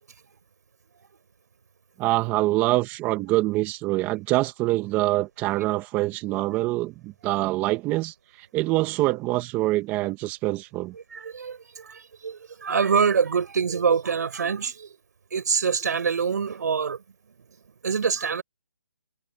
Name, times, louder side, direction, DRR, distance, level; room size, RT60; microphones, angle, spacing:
voice 1, 2.0-10.9, right 18 dB, 20° right, 1.5 m, -25 dB
voice 2, 10.9-15.0 15.3-17.0 17.8-18.4, right 6 dB, 65° right, 5.6 m, -25 dB
hypercardioid pair, 155°, 10 cm